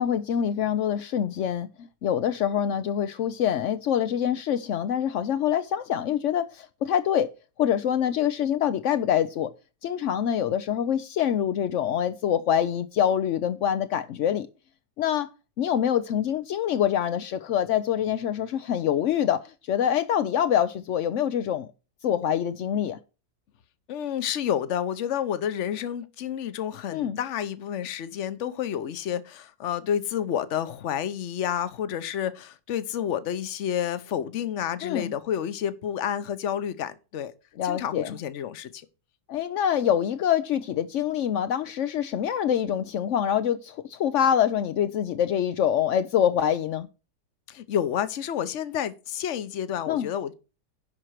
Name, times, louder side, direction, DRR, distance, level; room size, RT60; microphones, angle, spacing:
voice 1, 0.0-9.5 9.8-14.5 15.0-15.3 15.6-21.7 22.0-23.0 26.9-27.2 34.8-35.1 37.6-38.2 39.3-46.9 49.9-50.1, left 9 dB, 70° left, 0.7 m, -25 dB
voice 2, 23.9-37.3 37.6-38.9 47.5-50.3, left 9 dB, 50° left, 1.0 m, -30 dB
11.0 x 4.4 x 6.4 m
omnidirectional pair, 1.9 m